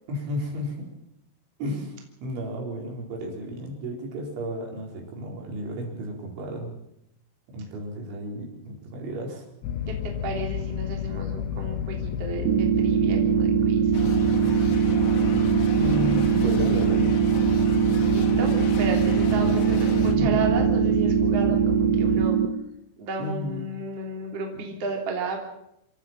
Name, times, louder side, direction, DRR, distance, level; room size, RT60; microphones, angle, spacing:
voice 1, 0.1-0.9 1.6-6.8 7.5-9.5 15.8-17.1 20.1-20.4 23.2-23.7 24.5-24.7, equal, 65° right, 0 dB, 6.8 m, -33 dB
sound 1, 9.6-22.3, left 8 dB, 75° left, 3.1 m, -31 dB
voice 2, 9.9-13.8 18.1-22.4 23.0-25.4, right 3 dB, 35° right, 1 dB, 3.5 m, -33 dB
sound 2, 12.5-22.5, right 9 dB, 80° right, 3.6 m, -22 dB
sound 3, 13.9-20.1, left 5 dB, 55° left, 2.6 m, -34 dB
27.5 x 14.5 x 7.5 m, 0.79 s
omnidirectional pair, 5.9 m